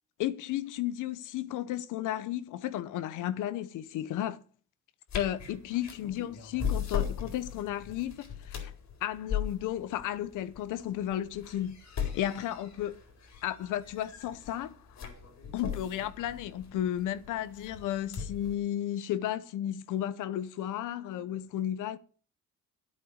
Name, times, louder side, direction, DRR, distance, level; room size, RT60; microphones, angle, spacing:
voice 1, 0.2-4.4 5.1-8.7 9.0-12.9 13.4-14.8 15.5-22.0, left 12 dB, 85° left, 0.9 m, -33 dB
sound 1, 5.1-18.5, left 8 dB, 65° left, 4.2 m, -39 dB
10.0 x 8.6 x 7.9 m
cardioid pair, 90°, 30 cm